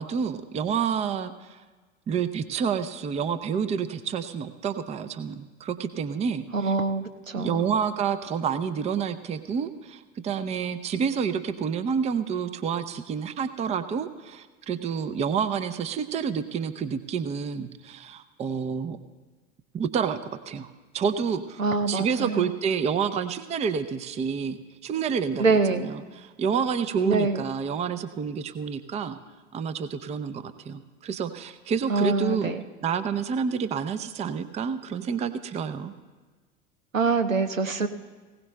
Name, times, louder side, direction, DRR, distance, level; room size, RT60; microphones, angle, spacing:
voice 1, 0.0-1.6 2.1-6.7 7.3-19.0 19.7-20.2 20.5-21.6 21.9-29.2 29.5-32.5 32.8-35.9, right 6 dB, 15° right, 12 dB, 0.5 m, -29 dB
voice 2, 6.5-7.6 21.6-22.5 25.4-25.9 27.0-27.4 31.9-32.6 36.9-37.9, right 4 dB, 85° right, 8 dB, 0.9 m, -24 dB
19.5 x 17.0 x 2.2 m, 1.4 s
figure-of-eight pair, 80°, 38 cm